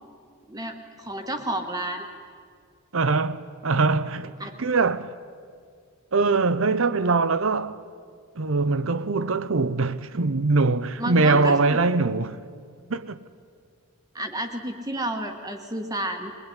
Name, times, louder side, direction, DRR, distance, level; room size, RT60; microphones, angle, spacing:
voice 1, 0.5-2.0 4.4-4.5 11.0-11.8 14.1-16.3, right 1 dB, 15° right, 1.5 m, -31 dB
voice 2, 2.9-5.1 6.1-7.8 8.4-12.4 12.9-13.2, right 3 dB, 65° right, 0.8 m, -22 dB
22.0 x 20.5 x 9.8 m
head